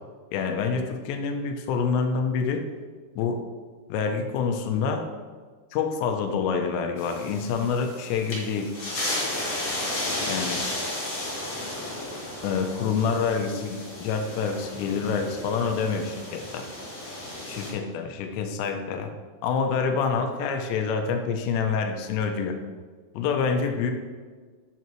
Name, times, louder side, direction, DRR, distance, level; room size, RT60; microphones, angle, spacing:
voice 1, 0.3-2.7 3.2-3.4 3.9-5.1 5.7-8.7 10.3-10.7 12.4-16.7 17.5-19.1 19.4-22.6 23.1-23.9, left 5 dB, 80° left, 5 dB, 2.9 m, -27 dB
sound 1, 7.0-17.7, left 1 dB, 35° left, 3.0 m, -34 dB
9.3 x 8.4 x 3.1 m, 1.5 s
omnidirectional pair, 5.2 m